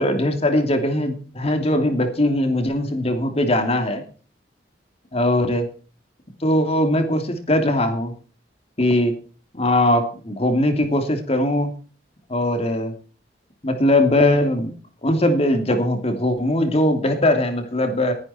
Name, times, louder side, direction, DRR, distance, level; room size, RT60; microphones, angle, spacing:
voice 1, 0.0-4.0 5.1-5.6 6.4-8.1 8.8-9.1 9.5-11.7 12.3-12.9 13.6-14.7 15.0-18.1, left 1 dB, 35° left, 6 dB, 2.8 m, -20 dB
19.5 x 10.5 x 4.4 m, 0.39 s
head